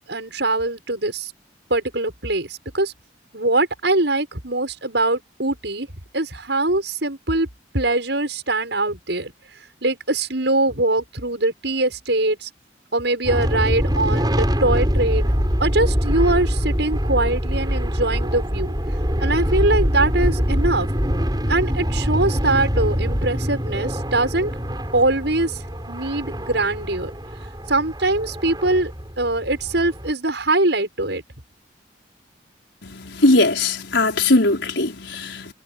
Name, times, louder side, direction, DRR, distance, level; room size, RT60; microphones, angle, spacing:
voice 1, 0.1-1.3 1.7-2.9 3.3-5.9 6.1-7.5 7.7-9.3 9.8-12.5 12.9-18.7 19.2-20.9 21.5-24.5 24.9-25.6 25.9-27.1 27.7-28.9 29.2-31.2, right 2 dB, 70° right, 7.0 m, -22 dB
sound 1, 13.2-30.1, equal, 20° right, 7.2 m, -24 dB
voice 2, 32.8-35.5, left 2 dB, 80° left, 4.9 m, -19 dB
head